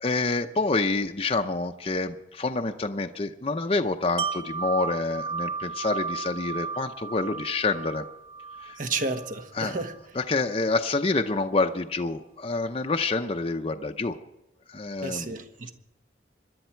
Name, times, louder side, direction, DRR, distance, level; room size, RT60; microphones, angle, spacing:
voice 1, 0.0-8.0 8.6-8.8 9.5-9.8 10.1-14.2 14.7-15.3, left 3 dB, 35° left, 4 dB, 0.7 m, -27 dB
Wind chime, 4.2-10.0 10.4-10.5, right 5 dB, 30° right, 1.3 m, -34 dB
voice 2, 8.8-9.9 15.0-15.7, right 3 dB, 50° right, 7 dB, 1.4 m, -31 dB
26.0 x 11.5 x 4.5 m, 0.90 s
head